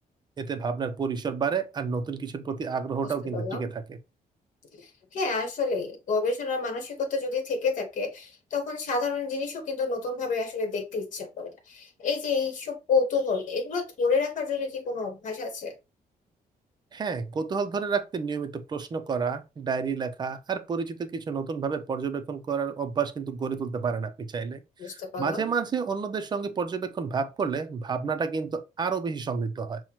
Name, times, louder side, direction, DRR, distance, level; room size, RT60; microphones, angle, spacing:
voice 1, 0.4-4.0 16.9-29.8, right 5 dB, 30° right, 0.4 m, -30 dB
voice 2, 3.0-3.6 4.7-15.7 24.8-25.4, left 4 dB, 55° left, 1.2 m, -29 dB
5.7 x 2.1 x 2.9 m
cardioid pair, 160°, 15 cm